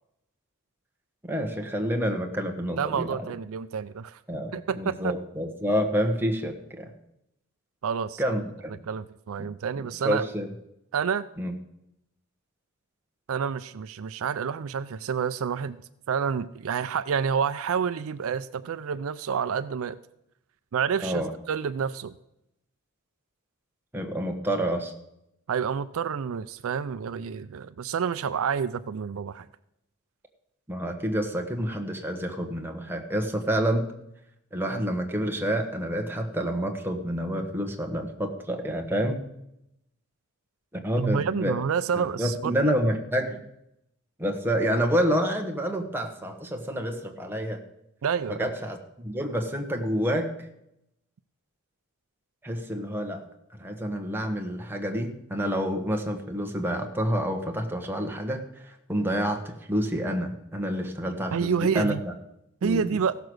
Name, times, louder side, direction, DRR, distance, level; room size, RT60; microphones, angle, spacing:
voice 1, 1.2-3.2 4.3-6.9 8.2-8.8 10.0-10.5 11.4-11.5 21.0-21.3 23.9-24.9 30.7-33.9 34.5-39.2 40.8-41.6 42.0-43.4 44.2-47.6 48.3-50.3 52.4-53.2 53.6-62.1 62.6-62.8, equal, 10° right, 3 dB, 1.3 m, -28 dB
voice 2, 2.7-4.2 4.5-5.1 7.8-8.2 8.9-10.3 10.9-11.3 13.3-15.8 16.1-20.0 20.7-22.1 25.5-29.5 41.0-42.7 48.0-48.5 61.3-62.0 62.6-63.2, right 6 dB, 70° right, 13 dB, 0.4 m, -29 dB
15.5 x 6.8 x 6.2 m, 0.82 s
head